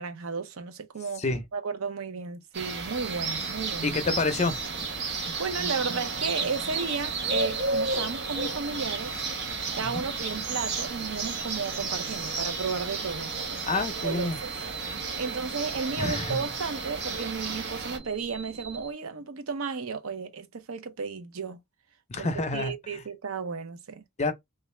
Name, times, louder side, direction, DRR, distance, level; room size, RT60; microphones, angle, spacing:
voice 1, 0.0-3.9 5.0-9.1 9.7-14.5 15.2-21.6 22.2-22.3 22.5-24.0, right 5 dB, 80° right, 0.6 m, -34 dB
sound 1, 2.5-18.0, right 3 dB, 55° right, 1.0 m, -33 dB
sound 2, 3.0-18.9, right 5 dB, 30° right, 0.7 m, -41 dB
voice 2, 3.8-4.6 9.8-10.0 13.6-14.4 16.0-16.5 22.1-23.0 24.2-24.3, left 3 dB, 35° left, 0.6 m, -28 dB
3.3 x 2.4 x 3.2 m
head